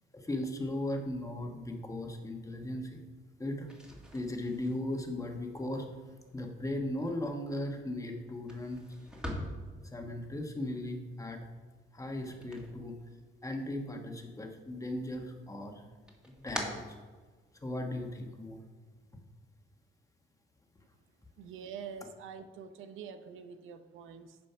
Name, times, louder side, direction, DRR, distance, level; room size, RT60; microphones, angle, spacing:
voice 1, 0.1-3.0 3.4-3.7 4.1-5.9 6.3-8.8 9.8-11.4 11.9-13.0 13.4-15.8 16.3-16.8 17.6-18.6, left 1 dB, 15° left, 3 dB, 1.3 m, -37 dB
sound 1, 3.6-13.6 13.9-14.7 15.1-17.7, equal, 5° right, 1.8 m, -46 dB
voice 2, 21.4-24.4, right 6 dB, 85° right, 9 dB, 0.7 m, -46 dB
9.0 x 5.3 x 5.7 m, 1.4 s
cardioid pair, 90°, 20 cm